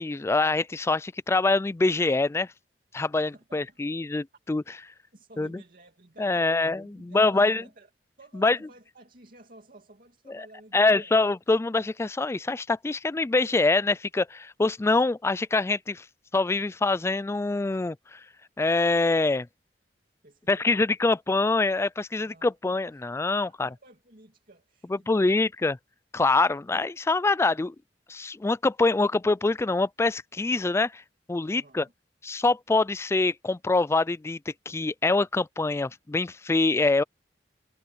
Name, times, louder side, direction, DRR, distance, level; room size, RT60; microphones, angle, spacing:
voice 1, 0.0-2.5 2.9-4.6 5.4-5.5 6.2-7.6 8.3-8.6 10.3-10.5 10.7-16.0 16.3-18.2 18.6-19.5 20.5-23.7 24.9-25.8 26.1-27.7 28.1-31.0 31.3-31.8 32.2-37.0, left 3 dB, 15° left, 0.3 m, -25 dB
voice 2, 3.2-3.8 5.1-7.9 8.2-11.2 20.2-21.4 22.1-22.5 23.4-25.3 31.5-31.9, right 2 dB, 55° right, 2.6 m, -53 dB
head